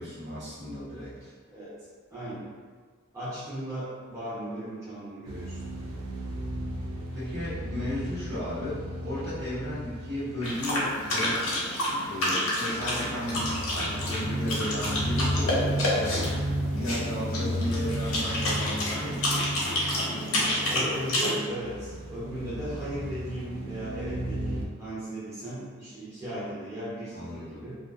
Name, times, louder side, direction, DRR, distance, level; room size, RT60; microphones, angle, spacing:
voice 1, 0.0-1.3 7.1-11.4 12.0-16.2 16.6-19.3 27.1-27.6, left 1 dB, 50° right, -10 dB, 0.9 m, -34 dB
voice 2, 2.1-2.5 3.1-5.6 20.7-27.8, right 1 dB, 15° right, -12 dB, 0.6 m, -36 dB
sound 1, 5.3-24.7, right 1 dB, 90° right, 0.4 m, -34 dB
sound 2, 10.4-21.3, left 1 dB, 70° left, 0.7 m, -29 dB
2.4 x 2.2 x 2.3 m, 1.5 s
head